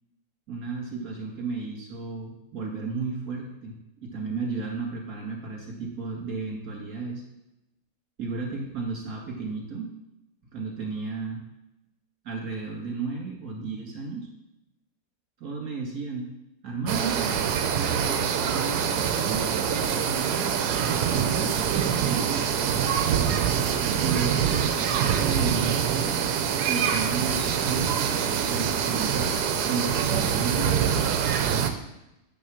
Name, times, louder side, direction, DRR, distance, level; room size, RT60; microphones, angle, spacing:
voice 1, 0.5-3.7 4.0-7.2 8.2-9.9 10.5-11.4 12.2-14.3 15.4-16.3 16.6-17.5 17.9-22.3 23.8-24.9 25.2-26.3 26.7-31.4, right 4 dB, 55° right, -2 dB, 2.5 m, -33 dB
sound 1, 16.9-31.7, right 8 dB, 75° right, 1.2 m, -25 dB
8.8 x 3.7 x 6.2 m, 0.92 s
omnidirectional pair, 1.8 m